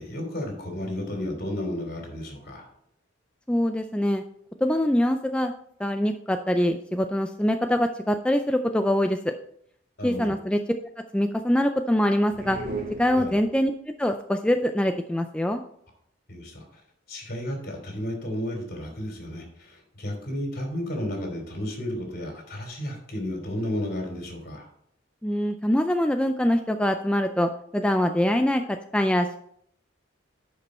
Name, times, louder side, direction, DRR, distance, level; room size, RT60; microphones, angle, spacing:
voice 1, 0.0-2.7 10.0-10.3 13.2-13.3 16.3-16.8 17.1-24.7, left 1 dB, 55° left, 2 dB, 3.1 m, -33 dB
voice 2, 3.5-4.2 4.6-5.5 5.8-9.3 10.0-10.6 11.1-12.6 13.0-13.7 14.0-15.6 25.2-29.4, equal, 5° left, 6 dB, 0.3 m, -24 dB
sound 1, 12.2-13.8, right 2 dB, 50° right, 1.9 m, -36 dB
10.0 x 5.3 x 4.3 m, 0.68 s
head